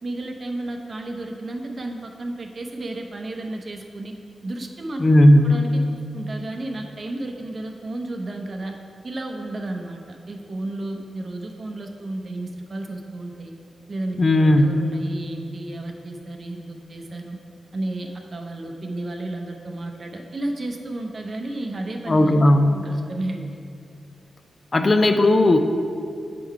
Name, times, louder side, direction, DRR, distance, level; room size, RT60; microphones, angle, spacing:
voice 1, 0.0-4.2 4.4-5.0 5.4-8.7 9.0-13.5 13.9-17.4 17.7-22.3 22.7-23.6, right 2 dB, 45° right, 3 dB, 0.6 m, -32 dB
voice 2, 5.0-5.6 14.2-14.8 22.1-22.8 24.7-25.6, left 1 dB, 40° left, 6 dB, 0.4 m, -16 dB
7.6 x 3.7 x 4.6 m, 2.4 s
cardioid pair, 90°, 0 cm